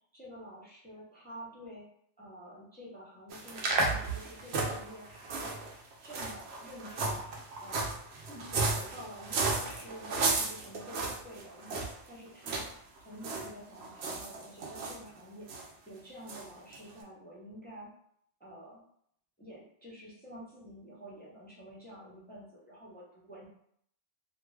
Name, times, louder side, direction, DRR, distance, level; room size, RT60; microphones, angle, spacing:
voice 1, 0.1-1.9 2.2-5.7 6.0-7.2 7.6-7.9 8.3-17.9 18.4-18.8 19.4-23.5, equal, 10° left, -6 dB, 0.5 m, -49 dB
sound 1, 3.3-12.0 12.4-12.7 13.0-13.5 13.7-15.0 15.5-15.7 16.3-16.4 16.7-16.8, right 3 dB, 70° right, 0.8 m, -34 dB
2.6 x 2.2 x 3.1 m, 0.68 s
omnidirectional pair, 1.2 m